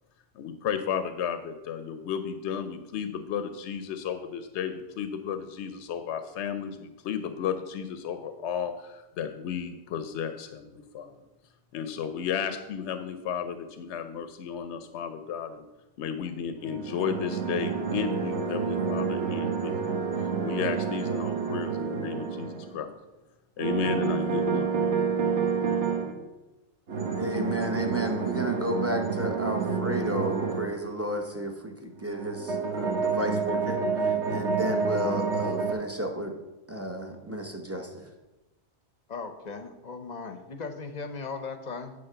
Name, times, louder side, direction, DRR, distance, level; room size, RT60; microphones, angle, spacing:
voice 1, 0.3-11.2 11.7-15.7 16.0-22.9 23.6-24.7, left 8 dB, 80° left, 9 dB, 0.9 m, -33 dB
sound 1, 16.6-22.8 23.6-26.1 26.9-30.7 32.0-35.7, right 5 dB, 85° right, 1.3 m, -29 dB
voice 2, 27.2-33.8 34.0-36.3 36.7-37.9, right 1 dB, 15° right, 3 dB, 0.7 m, -32 dB
voice 3, 39.1-41.9, left 4 dB, 45° left, 8 dB, 0.7 m, -37 dB
9.6 x 3.6 x 6.7 m, 1.1 s
omnidirectional pair, 1.2 m